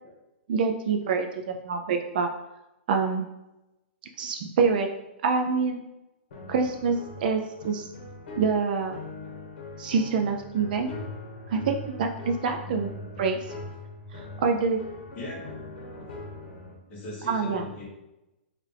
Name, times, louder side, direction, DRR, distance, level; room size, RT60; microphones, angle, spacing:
voice 1, 0.5-2.3 2.9-3.3 4.2-4.9 5.2-5.8 6.5-7.9 8.4-9.0 9.8-10.9 11.5-12.9 13.2-13.6 14.1-14.8 17.2-17.7, right 5 dB, 45° right, 4 dB, 0.3 m, -26 dB
sound 1, 6.3-16.7, left 2 dB, 55° left, 1.2 m, -41 dB
voice 2, 16.9-17.8, left 1 dB, 20° left, -4 dB, 1.1 m, -39 dB
4.4 x 2.4 x 3.2 m, 0.94 s
hypercardioid pair, 165°, 6 cm